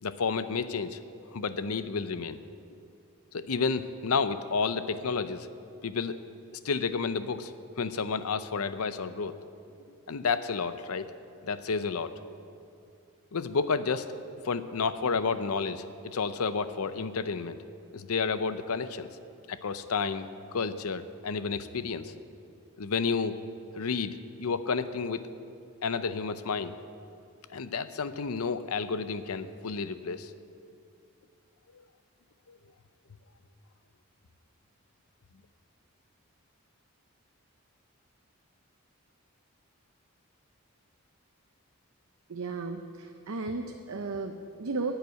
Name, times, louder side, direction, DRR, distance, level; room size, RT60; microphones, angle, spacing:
voice 1, 0.0-1.0 1.3-2.4 3.3-5.5 5.8-6.2 6.6-9.3 10.1-11.1 11.4-12.2 13.3-17.6 17.9-19.1 19.5-22.2 22.8-23.4 23.7-25.2 25.8-26.8 27.5-30.3 32.5-32.6, left 5 dB, 90° left, 12 dB, 0.6 m, -31 dB
voice 2, 42.3-44.9, right 3 dB, 80° right, 5 dB, 0.6 m, -34 dB
11.0 x 8.0 x 9.3 m, 2.5 s
head